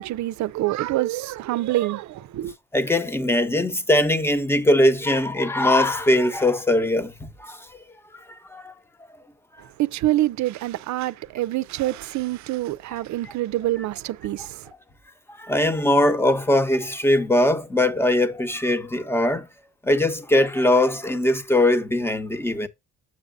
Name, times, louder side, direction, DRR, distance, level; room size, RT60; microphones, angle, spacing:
voice 1, 0.0-2.5 9.8-14.6, right 15 dB, 70° right, 0.5 m, -26 dB
voice 2, 2.7-7.6 8.5-8.7 15.4-19.5 19.8-22.7, left 1 dB, 10° left, 1.0 m, -21 dB
7.4 x 7.0 x 2.6 m
cardioid pair, 90°, 30 cm